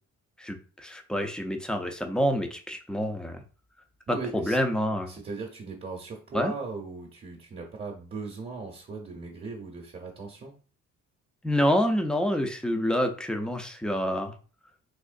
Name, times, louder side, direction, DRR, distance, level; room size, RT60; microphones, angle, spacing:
voice 1, 0.4-3.4 4.3-5.1 6.3-6.5 11.4-14.3, equal, 5° left, 5 dB, 0.5 m, -27 dB
voice 2, 4.1-4.6 5.1-10.5, right 3 dB, 30° right, 1 dB, 0.8 m, -38 dB
3.7 x 3.0 x 2.5 m, 0.38 s
cardioid pair, 90°, 30 cm